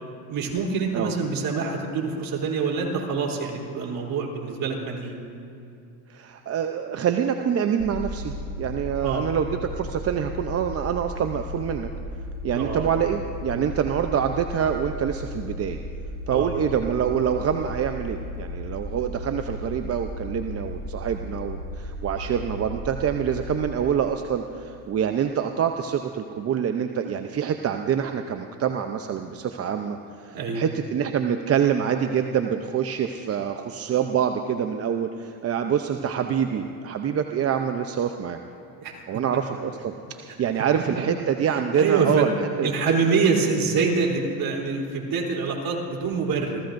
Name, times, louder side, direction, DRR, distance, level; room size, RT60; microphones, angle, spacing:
voice 1, 0.3-5.2 9.0-9.3 12.5-12.9 16.3-16.5 30.3-30.6 38.8-39.0 41.5-42.3 42.6-46.6, right 5 dB, 45° right, -1 dB, 3.5 m, -25 dB
voice 2, 6.1-11.9 12.4-15.8 16.3-38.4 39.1-42.7, right 8 dB, 30° right, 6 dB, 0.7 m, -26 dB
sound 1, 7.8-23.6, left 1 dB, 65° right, 1.6 m, -35 dB
29.0 x 15.0 x 2.6 m, 2.7 s
supercardioid pair, 100°, 46 cm